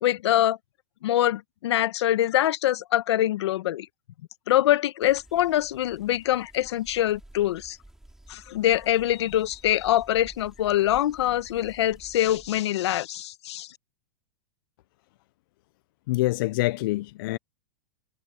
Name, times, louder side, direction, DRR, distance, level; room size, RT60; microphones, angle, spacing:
voice 1, 0.0-0.6 1.0-3.9 4.5-7.8 8.3-13.7, left 13 dB, 75° left, 1.1 m, -24 dB
sound 1, 5.0-12.6, right 1 dB, 5° right, 3.2 m, -52 dB
voice 2, 16.1-17.4, left 19 dB, 50° left, 0.4 m, -25 dB
supercardioid pair, 155°, 14 cm